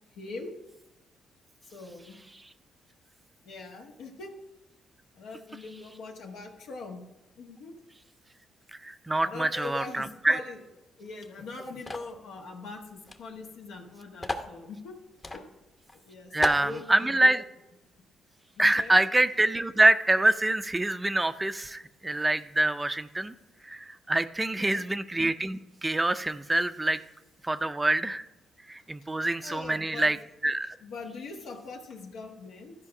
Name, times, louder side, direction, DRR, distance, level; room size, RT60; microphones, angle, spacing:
voice 1, 0.1-0.5 1.7-2.2 3.4-4.3 5.1-7.0 7.4-7.7 9.2-10.6 11.0-15.0 15.3-15.5 15.9-17.4 18.6-19.0 24.4-24.8 29.4-30.1 30.8-32.7, left 3 dB, 85° left, 0 dB, 1.3 m, -42 dB
voice 2, 8.8-10.4 16.3-17.4 18.6-23.3 23.6-27.0 27.4-28.2 28.7-30.2 30.4-30.8, right 2 dB, 15° right, 12 dB, 0.4 m, -25 dB
sound 1, 11.9-12.2 13.1-13.2 13.4-13.5 14.2-14.5 15.2-15.4 15.9-16.0 16.4-16.7, left 1 dB, 20° left, 0.8 m, -33 dB
12.5 x 5.1 x 4.9 m, 0.96 s
cardioid pair, 90°, 0 cm